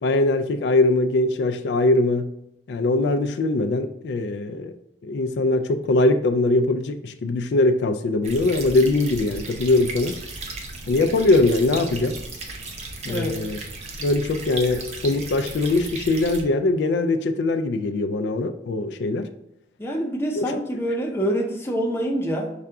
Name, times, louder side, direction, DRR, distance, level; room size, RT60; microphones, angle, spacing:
voice 1, 0.0-2.3 2.7-4.7 5.0-10.2 10.9-12.2 13.0-13.6 14.0-19.3 20.4-20.6, left 2 dB, 85° left, 8 dB, 0.3 m, -21 dB
sound 1, 8.2-16.4, right 2 dB, 40° right, 0.6 m, -36 dB
voice 2, 13.1-13.4 19.8-22.5, equal, 15° left, 0 dB, 0.6 m, -26 dB
5.7 x 2.3 x 3.7 m, 0.85 s
head